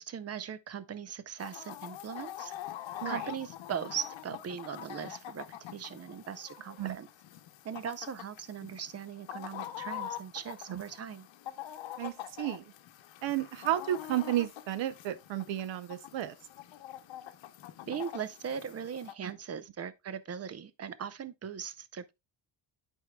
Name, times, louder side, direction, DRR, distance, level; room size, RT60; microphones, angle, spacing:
voice 1, 0.0-2.5 3.0-7.1 7.6-11.3 17.9-22.1, right 8 dB, 35° right, 0.6 m, -39 dB
Chicken rooster, 1.4-19.1, left 12 dB, 85° left, 0.9 m, -45 dB
voice 2, 12.0-12.6 13.2-16.3, right 13 dB, 80° right, 0.8 m, -32 dB
11.0 x 4.6 x 2.3 m
cardioid pair, 135°, 44 cm